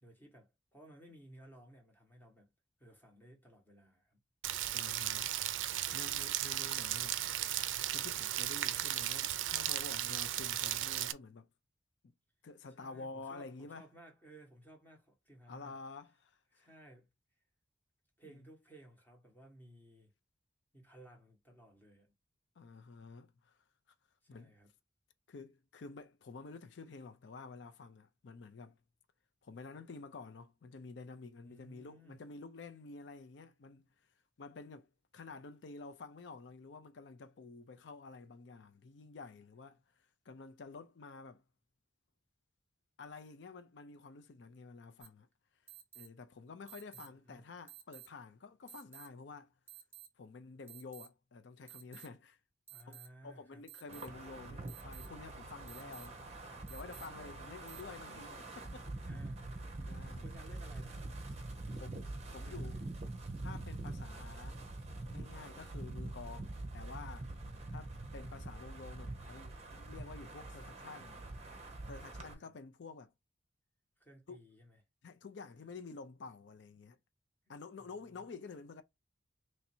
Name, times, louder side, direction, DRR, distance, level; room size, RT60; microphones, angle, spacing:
voice 1, 0.0-2.5 2.8-4.2 12.7-15.8 16.5-17.1 18.2-20.1 20.7-22.1 24.2-24.7 31.4-32.2 46.9-47.4 52.7-53.6 59.0-59.6 60.2-61.1 62.4-63.0 72.1-72.5 74.0-74.8 77.5-78.3, right 1 dB, 10° left, 1.2 m, -58 dB
Rain, 4.4-11.1, right 13 dB, 80° right, 0.4 m, -36 dB
voice 2, 4.7-5.3 5.6-7.2 7.9-11.5 12.4-13.9 15.5-16.7 18.2-18.4 22.6-23.6 24.3-24.5 25.3-28.8 29.4-33.9 34.4-34.9 35.1-39.8 40.3-41.4 43.0-45.3 45.9-49.5 50.2-52.4 52.9-56.2 56.7-59.0 59.9-60.3 61.8-62.8 63.4-64.6 65.1-67.3 67.7-71.2 71.9-73.1 74.3-74.4 75.0-77.0 77.5-78.8, left 4 dB, 65° left, 0.4 m, -50 dB
sound 1, 45.0-45.1 45.7-46.1 46.7-47.1 47.7-48.1 48.7-49.1 49.7-50.1 50.7-51.1 51.7-52.1 52.7-53.1 53.7-54.1 54.7-55.1 55.7-56.1 56.7-57.1 57.7-57.8, right 12 dB, 15° right, 1.3 m, -52 dB
Wind, 53.9-72.3, right 2 dB, 35° right, 0.7 m, -45 dB
3.1 x 2.7 x 4.3 m
head